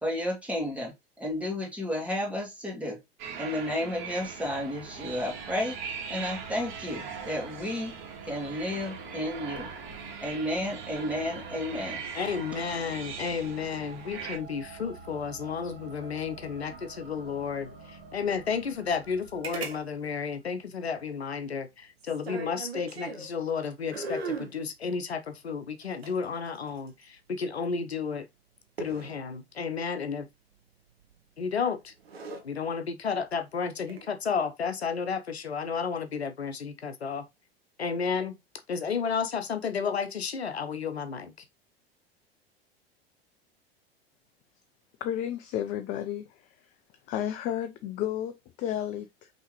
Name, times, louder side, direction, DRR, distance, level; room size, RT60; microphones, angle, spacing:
voice 1, 0.0-3.0 3.4-5.8 6.1-7.9 8.3-9.7 10.2-12.0, left 1 dB, 5° right, 2.0 m, -32 dB
sound 1, 3.2-14.4, right 6 dB, 50° right, 1.4 m, -41 dB
sound 2, 4.2-20.4, right 4 dB, 35° right, 2.0 m, -48 dB
voice 2, 12.1-28.2 28.8-30.3 31.4-31.9 32.4-37.2 37.8-38.4 38.7-41.3, left 6 dB, 80° left, 0.7 m, -32 dB
sound 3, 19.4-19.8 20.0-20.1 22.0-23.3 23.9-24.6 25.8-27.0 28.8-29.2 31.0-31.4 31.9-32.4 33.8-34.1, right 3 dB, 75° right, 0.9 m, -37 dB
voice 3, 45.0-46.5 47.1-49.3, left 11 dB, 25° left, 0.4 m, -32 dB
5.5 x 3.0 x 3.0 m
figure-of-eight pair, 85°, 31 cm